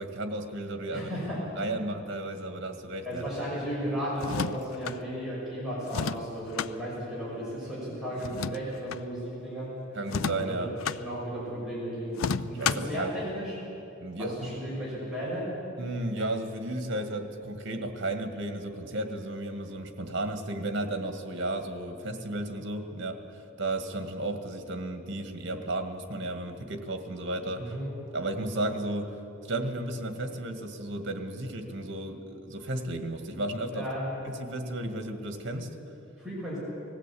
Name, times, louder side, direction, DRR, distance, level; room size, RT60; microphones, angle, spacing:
voice 1, 0.0-1.1 1.5-3.2 9.9-10.7 12.5-13.3 14.0-14.7 15.8-27.8 28.1-29.2 29.5-33.9 34.2-35.7, right 1 dB, 60° right, 6 dB, 1.8 m, -34 dB
voice 2, 0.9-1.4 3.0-9.7 10.3-10.7 10.9-13.5 14.2-15.5 27.5-27.9 33.7-34.1 36.2-36.6, equal, 5° right, -8 dB, 6.1 m, -34 dB
sound 1, 4.2-5.0 5.9-6.7 8.2-9.0 10.1-11.0 12.1-13.0, left 6 dB, 80° left, 0.5 m, -32 dB
19.5 x 16.5 x 8.5 m, 2.9 s
head